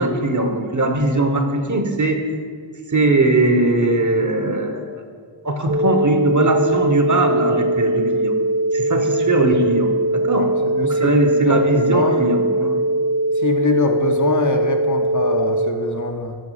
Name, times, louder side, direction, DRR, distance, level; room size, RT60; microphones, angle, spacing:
voice 1, 0.0-2.2 2.9-5.0 5.4-8.3 8.7-10.5 10.8-12.8, right 2 dB, 40° right, 5 dB, 0.7 m, -19 dB
sound 1, 5.7-15.7, right 1 dB, 65° right, 1.1 m, -21 dB
voice 2, 10.4-11.1 11.4-11.7 11.9-12.3 13.3-16.4, left 4 dB, 40° left, 4 dB, 0.6 m, -23 dB
5.6 x 5.2 x 5.5 m, 2.1 s
wide cardioid pair, 50°, 46 cm